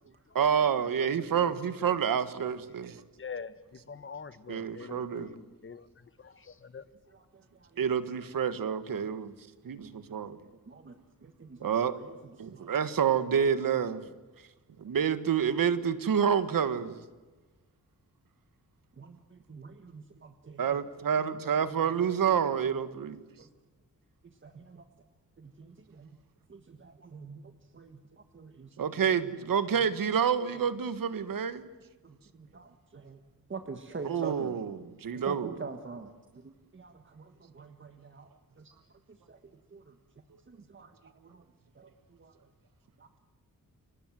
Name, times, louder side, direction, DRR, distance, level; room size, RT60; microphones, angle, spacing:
voice 1, 0.4-2.9 4.5-5.4 7.8-9.3 9.6-10.4 11.6-12.0 12.4-14.0 14.8-17.0 20.6-23.2 28.8-31.7 34.0-35.6, right 7 dB, 85° right, 1.7 m, -28 dB
voice 2, 1.0-1.5 1.8-2.0 3.2-5.9 6.2-6.8, left 6 dB, 40° left, 1.2 m, -44 dB
voice 3, 7.1-7.8 10.7-12.7 19.0-20.6 21.8-21.9 23.4-23.5 24.4-24.8 25.4-26.2 26.5-28.9 32.0-33.2 33.5-34.6 35.3-36.1 36.4-38.3 38.6-38.7 39.3-39.4 39.7-39.9 40.5-41.4 41.7-41.9 42.2-42.3 43.0-43.2, right 4 dB, 35° right, 1.6 m, -46 dB
30.0 x 24.5 x 7.7 m
wide cardioid pair, 160°, 33 cm